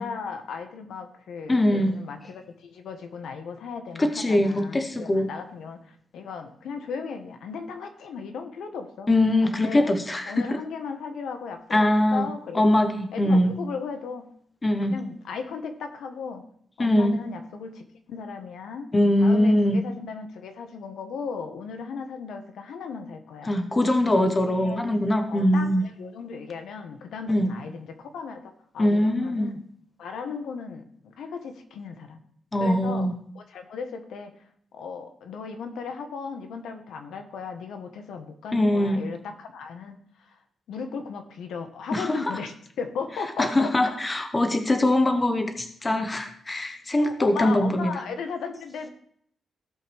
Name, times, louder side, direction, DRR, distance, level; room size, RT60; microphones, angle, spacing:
voice 1, 0.0-9.1 9.4-9.9 10.3-12.6 13.1-14.3 14.8-16.4 16.8-18.9 19.2-23.5 24.1-24.8 25.3-29.6 30.0-32.2 32.6-33.1 33.3-34.3 34.7-40.4 40.7-43.9 47.0-48.9, left 5 dB, 80° left, 6 dB, 1.3 m, -36 dB
voice 2, 1.5-1.9 4.0-5.3 9.1-10.6 11.7-12.3 12.5-13.6 14.6-15.0 16.8-17.2 18.9-19.8 23.5-25.8 27.3-27.5 28.8-29.5 32.5-33.1 38.5-39.0 41.9-42.1 43.4-47.9, left 1 dB, 20° left, 6 dB, 1.0 m, -22 dB
16.0 x 5.8 x 3.4 m, 0.67 s
cardioid pair, 140°, 0 cm